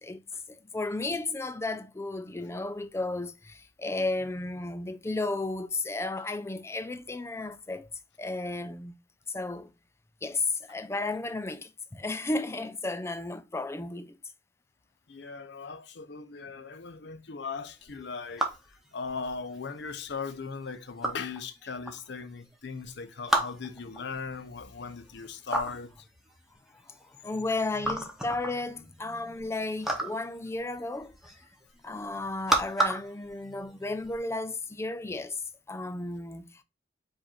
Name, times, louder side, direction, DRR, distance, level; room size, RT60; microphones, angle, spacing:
voice 1, 0.5-7.9 8.2-8.9 9.3-9.7 10.2-14.2 25.5-25.6 26.9-31.1 31.8-35.4 35.7-36.6, left 2 dB, 15° left, 0.4 m, -33 dB
voice 2, 15.1-26.1, left 5 dB, 70° left, 0.6 m, -38 dB
sound 1, 17.8-34.2, right 1 dB, ahead, 0.8 m, -34 dB
4.8 x 2.5 x 4.3 m
head